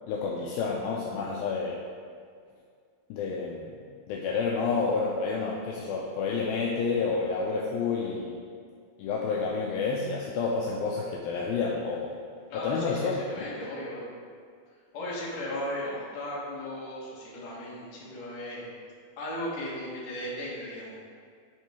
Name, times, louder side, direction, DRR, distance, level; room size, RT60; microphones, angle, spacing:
voice 1, 0.1-1.8 3.1-3.8 4.1-8.4 9.0-12.2 12.5-13.1, left 4 dB, 80° left, -3 dB, 2.3 m, -29 dB
voice 2, 12.5-14.1 14.9-18.7 19.2-20.9, left 1 dB, 55° left, -6 dB, 2.3 m, -36 dB
11.0 x 3.8 x 3.4 m, 2.1 s
omnidirectional pair, 4.5 m